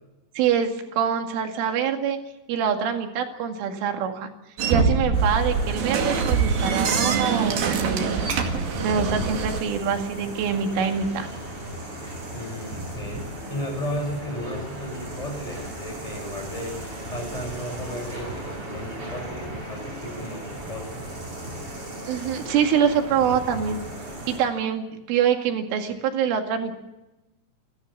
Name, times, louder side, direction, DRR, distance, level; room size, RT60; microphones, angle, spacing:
voice 1, 0.4-2.2 2.5-4.3 4.7-8.3 8.8-11.3 22.1-23.8 24.3-26.8, right 7 dB, 80° right, 4 dB, 4.7 m, -25 dB
sound 1, 4.6-9.6, right 5 dB, 55° right, 3.7 m, -24 dB
sound 2, 5.1-24.4, right 1 dB, 25° right, 8.0 m, -36 dB
voice 2, 12.3-13.2 13.5-16.8 17.1-21.2, equal, 5° left, 2 dB, 6.3 m, -34 dB
28.0 x 14.0 x 7.3 m, 0.97 s
omnidirectional pair, 5.6 m